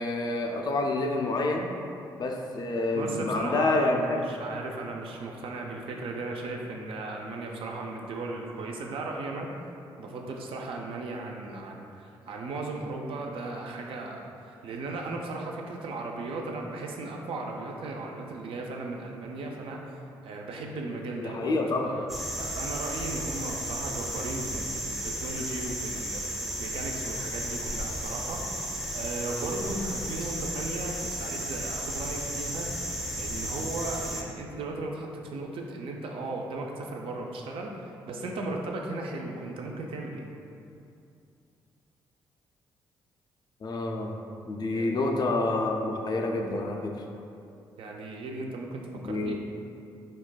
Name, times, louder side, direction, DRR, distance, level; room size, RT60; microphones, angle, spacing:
voice 1, 0.0-1.7 2.2-4.2 21.2-21.9 43.6-44.2 44.5-46.9 48.9-49.3, left 2 dB, 45° left, 1 dB, 0.4 m, -28 dB
voice 2, 2.9-9.5 10.0-21.5 21.8-28.6 28.9-32.7 33.1-40.3 44.7-44.9 47.8-49.3, right 2 dB, 65° right, 1 dB, 0.4 m, -36 dB
sound 1, 22.1-34.2, right 1 dB, ahead, 0.6 m, -34 dB
4.0 x 2.1 x 2.2 m, 2.6 s
hypercardioid pair, 50°, 10 cm